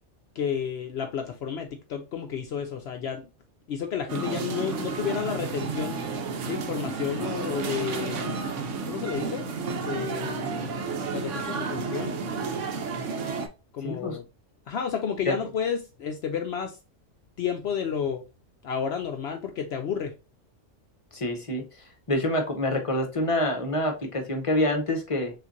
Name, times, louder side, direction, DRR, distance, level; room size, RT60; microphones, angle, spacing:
voice 1, 0.4-3.3 3.7-6.0 6.4-8.4 8.8-9.5 9.7-12.2 13.7-14.3 14.7-16.8 17.4-18.2 18.6-20.1, left 7 dB, 65° left, 0.8 m, -31 dB
sound 1, 4.1-13.5, right 4 dB, 75° right, 1.1 m, -31 dB
voice 2, 13.8-14.2 15.3-15.4 21.1-21.6 22.1-25.3, left 1 dB, 30° left, 0.7 m, -26 dB
5.9 x 2.5 x 2.6 m
omnidirectional pair, 1.3 m